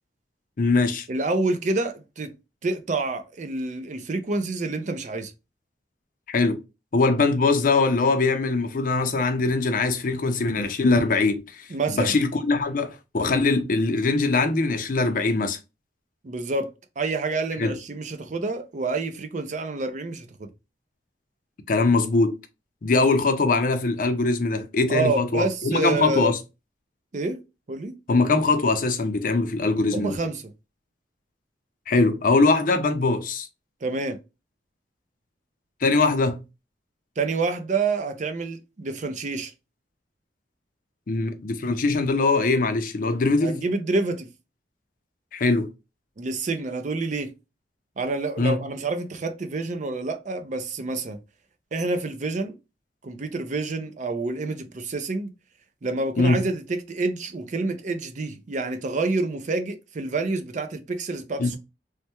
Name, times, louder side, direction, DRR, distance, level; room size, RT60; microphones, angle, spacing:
voice 1, 0.6-1.1 6.3-6.6 6.9-15.6 17.6-17.7 21.7-22.4 22.8-26.4 28.1-30.2 31.9-33.5 35.8-36.4 41.1-43.6 45.3-45.7 48.4-48.6 56.2-56.4 61.4-61.6, left 3 dB, 50° left, 0.5 m, -22 dB
voice 2, 1.1-2.3 2.6-5.3 11.7-12.1 16.2-20.5 24.9-26.3 27.1-27.4 27.7-28.0 29.9-30.5 33.8-34.2 37.2-39.5 43.4-44.3 46.2-47.3 48.0-51.2 51.7-52.5 53.0-55.3 55.8-61.6, right 3 dB, 45° right, 0.5 m, -28 dB
3.2 x 2.1 x 2.9 m
head